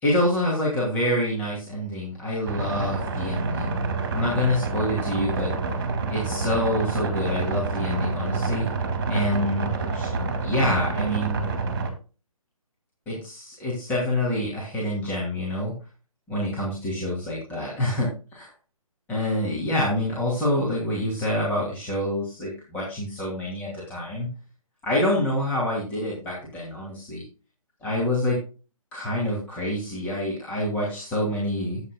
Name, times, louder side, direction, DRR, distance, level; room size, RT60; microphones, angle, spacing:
voice 1, 0.0-3.7 4.1-5.5 6.1-8.7 9.1-10.1 10.4-11.4 13.1-15.7 16.3-18.5 19.1-24.3 24.8-27.2 27.8-28.4 28.9-31.8, left 1 dB, 10° left, -5 dB, 2.6 m, -26 dB
sound 1, 2.5-11.9, right 3 dB, 35° right, 2.3 m, -28 dB
12.5 x 8.4 x 2.3 m, 0.33 s
figure-of-eight pair, 140°, 18 cm